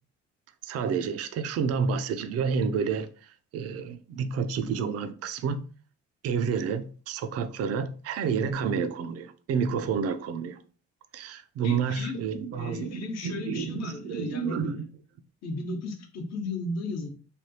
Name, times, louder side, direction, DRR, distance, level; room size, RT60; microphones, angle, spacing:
voice 1, 0.6-5.7 6.2-10.6 11.1-14.9, right 6 dB, 55° right, 0.4 m, -30 dB
voice 2, 11.6-12.2 12.5-14.6 15.4-17.1, left 3 dB, 65° left, 0.9 m, -35 dB
3.3 x 2.3 x 2.7 m
cardioid pair, 90°, 29 cm